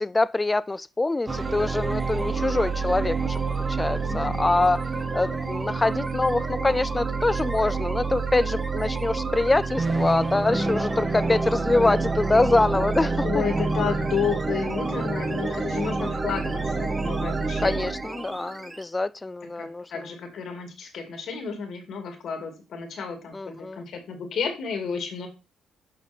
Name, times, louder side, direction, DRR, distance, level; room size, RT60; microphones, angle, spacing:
voice 1, 0.0-4.8 5.1-13.4 17.6-20.1 23.3-23.9, left 2 dB, 20° left, 0.3 m, -25 dB
sound 1, 1.3-18.8, right 3 dB, 25° right, 1.0 m, -28 dB
voice 2, 4.1-4.7 13.2-17.9 19.6-25.3, left 6 dB, 65° left, 2.2 m, -32 dB
7.3 x 5.7 x 4.3 m
cardioid pair, 90°, 0 cm